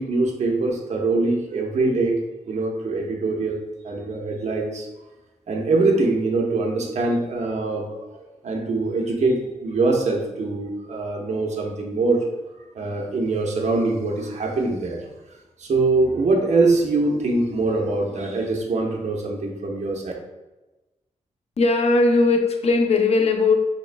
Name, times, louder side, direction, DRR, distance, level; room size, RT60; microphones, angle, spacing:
voice 1, 0.0-2.2 2.5-4.9 5.5-12.2 12.7-15.0 15.6-20.1, right 3 dB, 65° right, 0 dB, 0.9 m, -23 dB
voice 2, 21.6-23.5, left 3 dB, 55° left, 5 dB, 0.6 m, -18 dB
5.3 x 3.3 x 2.2 m, 1.1 s
cardioid pair, 80°, 13 cm